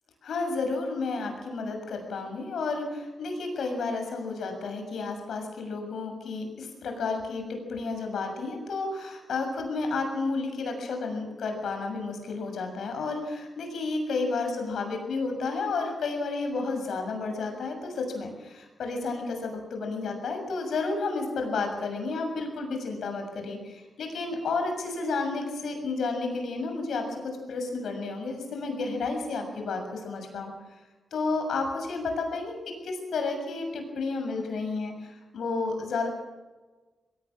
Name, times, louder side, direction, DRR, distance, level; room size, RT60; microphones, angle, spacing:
voice 1, 0.2-30.5 31.1-36.1, left 3 dB, 80° left, 4 dB, 6.9 m, -31 dB
22.5 x 18.5 x 7.5 m, 1.2 s
wide cardioid pair, 125°, 0 cm